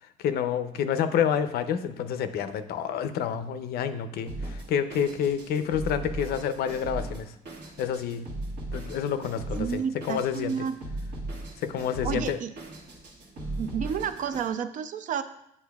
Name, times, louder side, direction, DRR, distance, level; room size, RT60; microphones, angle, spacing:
voice 1, 0.2-7.3 7.8-8.3 8.7-10.7 11.6-12.4, left 8 dB, 70° left, 10 dB, 0.5 m, -28 dB
Drum kit, 4.3-14.5, right 2 dB, 75° right, 1.4 m, -38 dB
voice 2, 9.6-10.8 12.0-12.5 13.6-15.2, right 7 dB, 50° right, 11 dB, 0.4 m, -30 dB
8.3 x 5.4 x 2.3 m, 0.78 s
cardioid pair, 110°, 17 cm